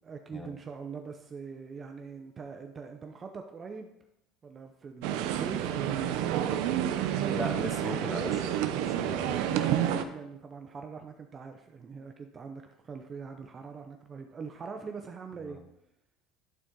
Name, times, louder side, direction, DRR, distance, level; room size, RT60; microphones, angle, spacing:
voice 1, 0.0-3.9 4.4-6.3 9.3-15.6, right 5 dB, 30° right, 5 dB, 0.6 m, -43 dB
sound 1, 5.0-10.0, right 10 dB, 80° right, 0.6 m, -29 dB
voice 2, 7.3-9.5 15.5-15.6, left 1 dB, 5° left, 4 dB, 1.1 m, -38 dB
12.0 x 4.1 x 3.7 m, 0.83 s
cardioid pair, 125°, 0 cm